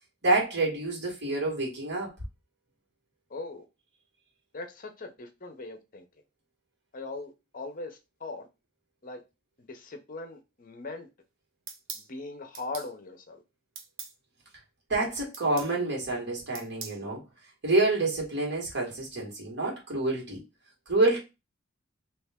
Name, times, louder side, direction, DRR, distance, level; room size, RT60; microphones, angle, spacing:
voice 1, 0.2-2.1 14.9-17.2 17.6-20.4 20.9-21.2, right 2 dB, 55° right, 1.7 m, -27 dB
voice 2, 3.3-3.6 4.5-6.0 6.9-8.5 9.0-9.2 9.6-11.1 11.9-13.4, left 3 dB, 40° left, 0.6 m, -40 dB
sound 1, 11.7-12.1 12.5-12.9 13.8-14.1 15.3-15.7 16.5-17.0, right 6 dB, 80° right, 0.8 m, -41 dB
3.4 x 2.9 x 3.4 m
head